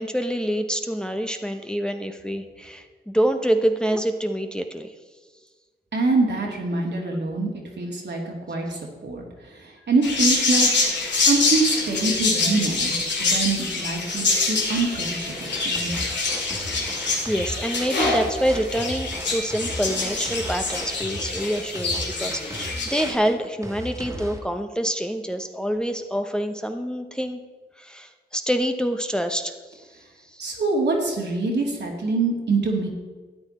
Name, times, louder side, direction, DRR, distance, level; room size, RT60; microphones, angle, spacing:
voice 1, 0.0-4.9 17.2-27.4 27.8-29.8 30.3-30.5, equal, 5° left, 6 dB, 0.9 m, -26 dB
voice 2, 5.9-10.7 11.3-12.9 13.2-16.1 30.4-32.9, right 3 dB, 75° right, -1 dB, 2.5 m, -25 dB
sound 1, 10.0-23.1, left 3 dB, 85° left, 2.4 m, -25 dB
sound 2, 15.4-24.4, equal, 15° right, 1.8 m, -36 dB
13.0 x 8.9 x 4.3 m, 1.3 s
cardioid pair, 55°, 18 cm